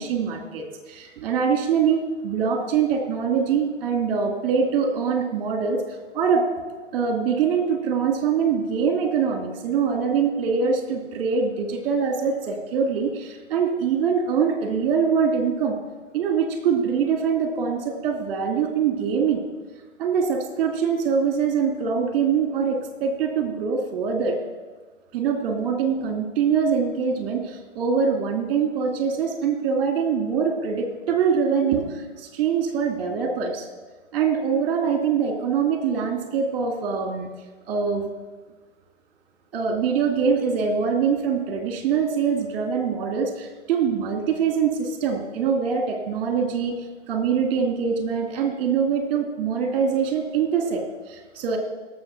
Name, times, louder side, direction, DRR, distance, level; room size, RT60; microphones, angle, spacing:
voice 1, 0.0-5.8 6.1-6.5 6.9-15.8 16.1-19.4 20.0-24.4 25.1-33.7 34.1-37.3 37.7-38.1 39.5-46.8 47.1-51.6, right 6 dB, 30° right, 4 dB, 2.6 m, -23 dB
17.5 x 7.2 x 5.9 m, 1.3 s
figure-of-eight pair, 135°, 38 cm